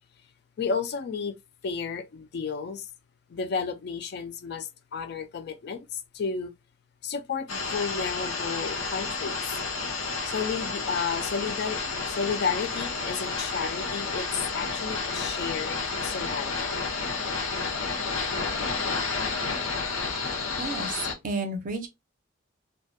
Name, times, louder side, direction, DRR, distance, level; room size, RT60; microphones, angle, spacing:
voice 1, 0.6-1.3 1.6-2.8 3.3-5.9 6.1-6.5 7.0-9.4 10.3-11.8 12.1-14.3 14.5-16.8, left 5 dB, 55° left, 0.3 m, -32 dB
sound 1, 7.5-21.1, left 4 dB, 85° left, 0.7 m, -31 dB
voice 2, 20.6-21.9, right 3 dB, 40° right, 0.5 m, -32 dB
2.2 x 2.1 x 2.6 m
head